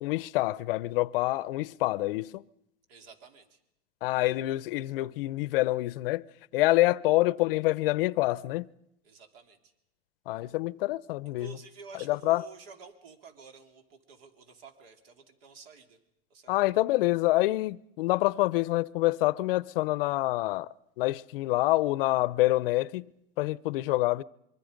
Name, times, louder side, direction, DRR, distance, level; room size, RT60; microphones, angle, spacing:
voice 1, 0.0-2.4 4.0-6.2 6.5-8.7 10.3-11.6 12.0-12.4 16.5-20.7 21.0-23.0 23.4-24.2, left 18 dB, 60° left, 0.7 m, -26 dB
voice 2, 2.9-3.6 9.0-9.6 11.3-16.0 16.3-16.5, right 4 dB, 65° right, 3.3 m, -50 dB
25.0 x 23.5 x 5.2 m
supercardioid pair, 155°, 31 cm